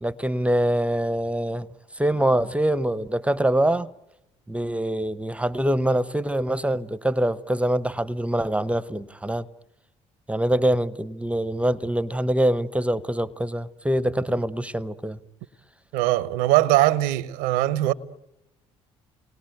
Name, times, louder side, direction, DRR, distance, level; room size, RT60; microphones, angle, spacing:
voice 1, 0.0-1.7 1.9-3.9 4.5-9.5 10.3-15.2, right 1 dB, 10° right, 0.9 m, -24 dB
voice 2, 15.9-17.9, right 16 dB, 80° right, 0.9 m, -21 dB
29.0 x 20.5 x 9.2 m
hypercardioid pair, 60°, 14 cm